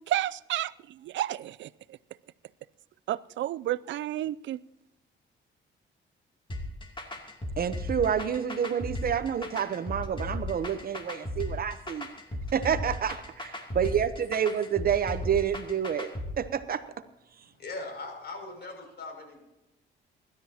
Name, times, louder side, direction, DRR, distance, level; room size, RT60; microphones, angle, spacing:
voice 1, 0.1-0.7 1.0-1.7 3.1-4.6, right 13 dB, 70° right, 19 dB, 0.4 m, -31 dB
sound 1, 6.5-16.3, left 1 dB, 25° left, 2.7 m, -36 dB
voice 2, 7.6-12.1 12.5-16.1 16.4-16.8, right 8 dB, 50° right, 12 dB, 0.9 m, -28 dB
voice 3, 17.5-19.4, left 3 dB, 55° left, 2 dB, 6.4 m, -40 dB
24.5 x 12.5 x 2.9 m, 0.95 s
cardioid pair, 90°, 20 cm